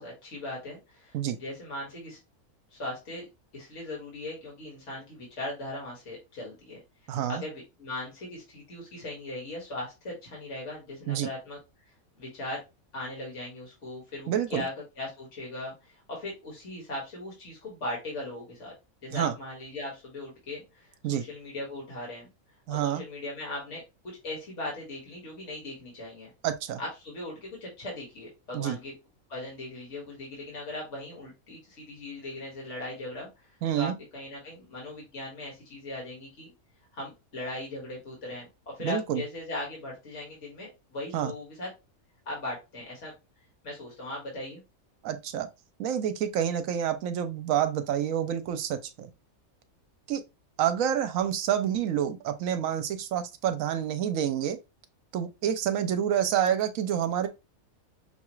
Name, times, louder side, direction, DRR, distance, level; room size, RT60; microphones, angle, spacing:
voice 1, 0.0-2.2 2.7-3.3 3.5-11.6 12.2-12.6 12.9-18.7 19.0-22.3 22.7-23.8 24.2-26.3 26.8-28.9 29.3-36.5 36.9-41.7 42.3-43.1 43.6-44.6, left 2 dB, 55° left, 2.0 m, -39 dB
voice 2, 7.1-7.4 11.1-11.3 14.3-14.7 19.1-19.3 21.0-21.2 22.7-23.0 26.4-26.8 28.5-28.8 33.6-33.9 38.8-39.2 41.1-41.3 45.0-45.5 45.8-49.1 50.1-50.2 50.6-54.6 55.1-57.3, right 9 dB, 70° right, 1.0 m, -28 dB
5.7 x 2.4 x 3.0 m
omnidirectional pair, 1.5 m